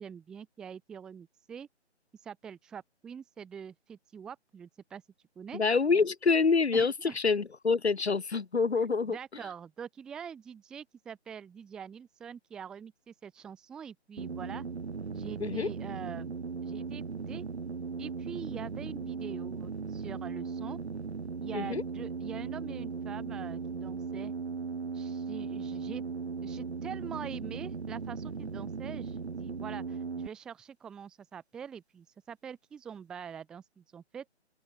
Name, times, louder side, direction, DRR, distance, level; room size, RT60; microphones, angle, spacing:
voice 1, 0.0-1.7 2.2-5.0 5.4-5.6 6.7-7.2 8.8-14.6 15.1-16.3 16.6-17.4 18.0-20.8 21.4-24.3 24.9-26.0 26.4-34.3, right 7 dB, ahead, 1.2 m, -44 dB
voice 2, 5.5-9.2 15.4-15.7 21.5-21.8, left 4 dB, 65° left, 2.7 m, -26 dB
sound 1, 14.2-30.3, right 5 dB, 65° right, 2.2 m, -37 dB
open air
hypercardioid pair, 170°, 35 cm